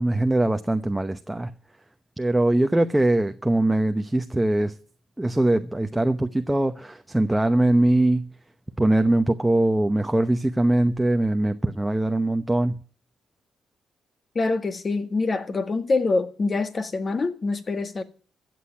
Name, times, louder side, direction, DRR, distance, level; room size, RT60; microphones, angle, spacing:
voice 1, 0.0-1.5 2.2-4.7 5.2-8.3 8.8-12.8, right 1 dB, 10° right, 0.9 m, -22 dB
voice 2, 14.4-18.0, left 3 dB, 35° left, 1.7 m, -25 dB
14.5 x 7.8 x 9.9 m
cardioid pair, 90°, 0 cm